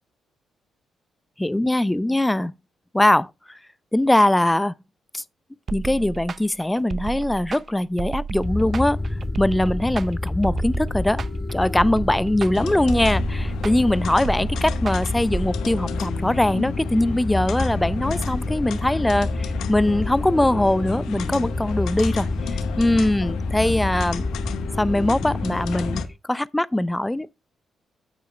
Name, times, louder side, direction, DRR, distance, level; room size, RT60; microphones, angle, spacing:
voice 1, 1.4-2.5 2.9-3.6 3.9-4.8 5.1-5.2 5.7-9.0 9.4-11.2 11.5-24.3 24.8-26.0 26.3-27.5, left 1 dB, 10° left, 0.5 m, -22 dB
sound 1, 5.7-15.5, right 5 dB, 50° right, 0.6 m, -33 dB
sound 2, 8.3-26.1, left 2 dB, 30° left, 2.9 m, -28 dB
sound 3, 12.5-26.0, left 10 dB, 75° left, 0.9 m, -34 dB
8.5 x 8.3 x 3.2 m
supercardioid pair, 50°, 0 cm